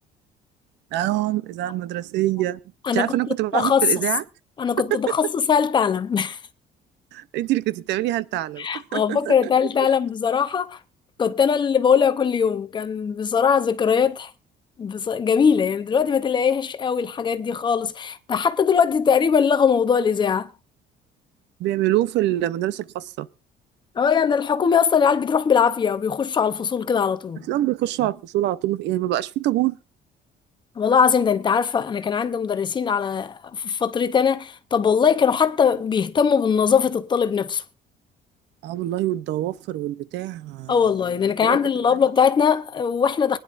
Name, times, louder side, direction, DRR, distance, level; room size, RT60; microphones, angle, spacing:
voice 1, 0.9-2.6 2.9-4.2 4.9-5.0 7.1-9.3 21.6-23.3 27.5-29.8 38.6-40.7 41.4-41.6, right 14 dB, 80° right, 0.6 m, -25 dB
voice 2, 2.8-3.2 3.5-3.9 4.6-6.4 8.6-10.8 11.2-14.3 14.8-20.5 24.0-27.5 30.8-37.6 40.7-43.4, left 6 dB, 25° left, 0.6 m, -21 dB
23.0 x 10.0 x 2.5 m
cardioid pair, 175°, 18 cm